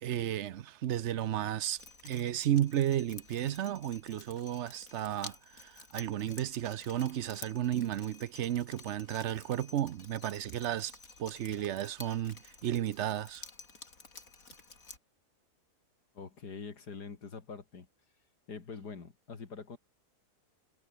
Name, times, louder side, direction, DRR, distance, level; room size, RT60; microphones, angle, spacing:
voice 1, 0.0-13.4, right 11 dB, 60° right, 0.8 m, -33 dB
Drip, 1.8-15.0, left 4 dB, 55° left, 3.7 m, -52 dB
voice 2, 16.1-17.9 18.5-19.8, left 5 dB, 85° left, 3.1 m, -44 dB
omnidirectional pair, 1.7 m